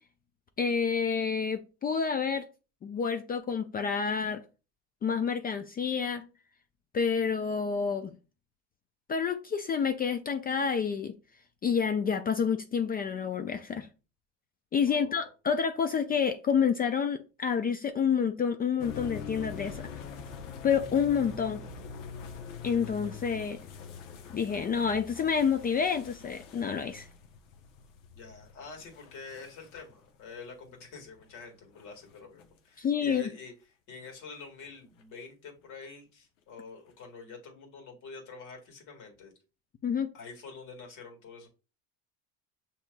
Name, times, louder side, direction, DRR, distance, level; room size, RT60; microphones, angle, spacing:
voice 1, 0.6-2.4 2.8-4.4 5.0-6.3 6.9-8.1 9.1-11.1 11.6-13.9 14.7-19.9 20.6-21.6 22.6-23.6 24.3-27.1 32.8-33.2 39.8-40.1, left 6 dB, 25° left, 0.4 m, -28 dB
voice 2, 14.9-15.3 28.1-33.5 33.9-39.3 40.1-41.5, left 4 dB, 55° left, 1.8 m, -46 dB
sound 1, 18.8-32.5 33.4-33.5 34.0-34.7 35.0-35.1 36.9-37.0, left 5 dB, 85° left, 0.8 m, -45 dB
6.2 x 2.9 x 2.2 m
supercardioid pair, 95°, 36 cm